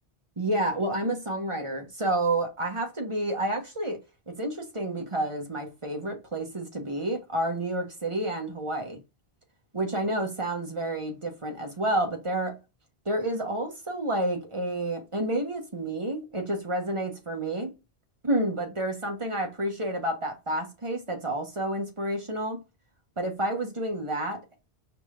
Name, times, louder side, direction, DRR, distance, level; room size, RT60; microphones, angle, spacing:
voice 1, 0.4-4.0 4.3-9.0 9.7-12.6 13.0-17.8 18.2-22.6 23.2-24.4, right 1 dB, 30° right, 1.0 m, -29 dB
5.0 x 3.3 x 2.4 m
omnidirectional pair, 1.1 m